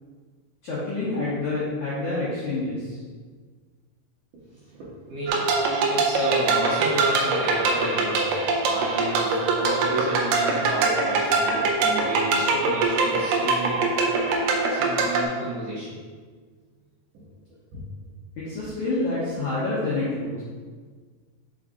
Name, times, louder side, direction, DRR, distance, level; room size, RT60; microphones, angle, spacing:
voice 1, 0.6-3.0 18.4-20.4, left 2 dB, 75° left, -9 dB, 1.7 m, -27 dB
voice 2, 4.5-5.6 5.9-14.0 14.7-16.0 17.7-17.8, right 1 dB, 65° right, -9 dB, 2.2 m, -32 dB
sound 1, 5.3-15.2, right 3 dB, 90° right, 2.1 m, -23 dB
6.3 x 5.0 x 3.8 m, 1.5 s
omnidirectional pair, 5.5 m